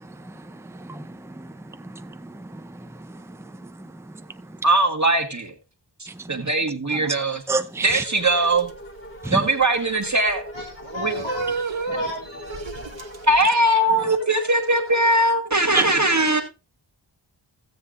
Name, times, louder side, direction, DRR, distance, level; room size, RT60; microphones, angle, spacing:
voice 1, 0.7-1.5 1.9-3.2 3.8-3.9 7.5-8.0 9.2-9.4 13.9-14.1 15.7-15.9, right 4 dB, 5° right, 0.7 m, -28 dB
voice 2, 4.6-5.5 6.0-7.4 7.8-8.7 9.3-10.4 10.9-11.2 13.2-16.4, right 1 dB, 35° right, 1.5 m, -20 dB
sound 1, 7.8-15.3, equal, 25° left, 1.8 m, -40 dB
sound 2, 8.2-13.4, right 4 dB, 75° right, 1.2 m, -33 dB
voice 3, 10.5-12.8, left 2 dB, 75° left, 2.5 m, -35 dB
15.5 x 7.8 x 2.5 m
wide cardioid pair, 45°, 46 cm